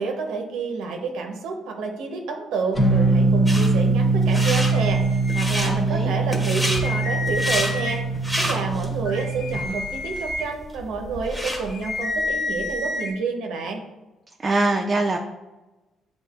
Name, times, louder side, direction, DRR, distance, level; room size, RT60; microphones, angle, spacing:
voice 1, 0.0-8.0 8.4-13.8, right 4 dB, 90° right, 3 dB, 0.7 m, -29 dB
sound 1, 2.8-9.6, right 3 dB, 25° left, 0.8 m, -22 dB
sound 2, 3.5-3.7 4.2-4.7 5.2-5.7 6.3-6.8 7.3-7.7 8.1-8.9 9.4-9.5 10.2-10.3 10.5-11.6, equal, 5° left, 1.2 m, -28 dB
sound 3, 4.3-5.9 6.3-6.4 6.6-8.2 8.7-13.1, left 2 dB, 60° left, 0.9 m, -30 dB
voice 2, 5.6-6.1 14.4-15.2, right 2 dB, 35° right, 2 dB, 0.4 m, -23 dB
7.4 x 2.5 x 2.4 m, 1.1 s
cardioid pair, 90°, 0 cm